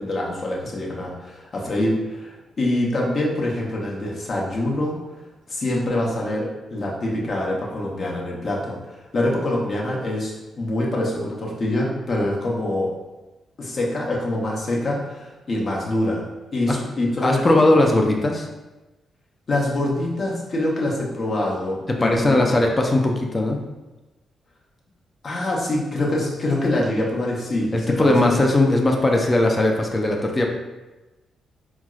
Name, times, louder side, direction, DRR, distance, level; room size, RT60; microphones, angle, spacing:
voice 1, 0.0-4.9 5.5-12.9 13.6-16.2 16.5-17.5 19.5-22.5 25.2-27.7 28.0-28.4, left 1 dB, 50° left, -3 dB, 0.8 m, -25 dB
voice 2, 17.2-18.5 21.9-23.6 27.7-30.5, left 2 dB, 30° left, 2 dB, 0.5 m, -19 dB
4.5 x 2.0 x 2.3 m, 1.1 s
supercardioid pair, 60°, 0 cm